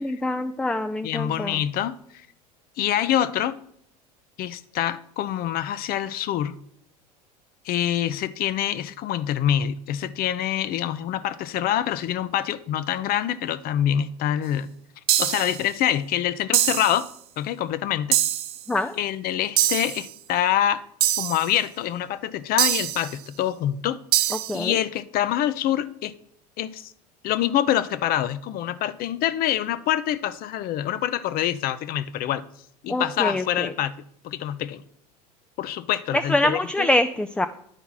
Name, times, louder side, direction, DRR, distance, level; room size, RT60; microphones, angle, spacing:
voice 1, 0.0-1.6 18.7-18.9 24.5-24.8 32.9-33.7 36.1-37.5, left 1 dB, 5° left, 0.4 m, -24 dB
voice 2, 1.0-2.0 2.8-3.6 4.4-6.5 7.6-14.7 15.2-17.1 17.4-18.2 18.9-20.8 21.2-24.0 24.5-26.1 26.6-26.9 27.2-32.4 32.8-34.0 34.2-34.8 35.6-36.9, left 11 dB, 45° left, 0.6 m, -25 dB
sound 1, 15.1-15.6 16.5-17.0 18.1-18.6 19.6-20.1 21.0-21.5 22.6-23.1 24.1-24.6, right 12 dB, 50° right, 0.7 m, -23 dB
10.0 x 4.6 x 5.6 m
hypercardioid pair, 80°, 21 cm